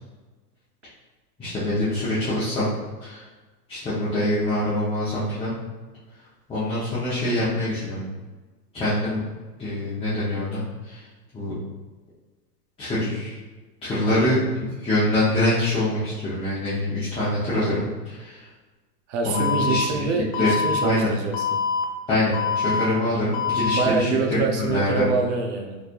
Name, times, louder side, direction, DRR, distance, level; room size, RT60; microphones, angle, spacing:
voice 1, 1.4-2.7 3.0-3.2 3.7-5.5 6.5-8.0 8.7-9.2 9.6-11.0 11.3-11.5 12.8-13.4 13.8-18.5 19.2-20.1 20.4-21.1 22.1-25.0, left 1 dB, 10° left, -10 dB, 0.8 m, -25 dB
voice 2, 19.1-21.6 23.7-25.8, right 4 dB, 45° right, 3 dB, 0.7 m, -26 dB
Alarm, 19.3-19.8 20.3-20.8 21.3-21.8 22.3-22.8 23.3-23.8, left 6 dB, 50° left, 0.6 m, -24 dB
4.1 x 3.3 x 2.5 m, 1.2 s
hypercardioid pair, 125°, 48 cm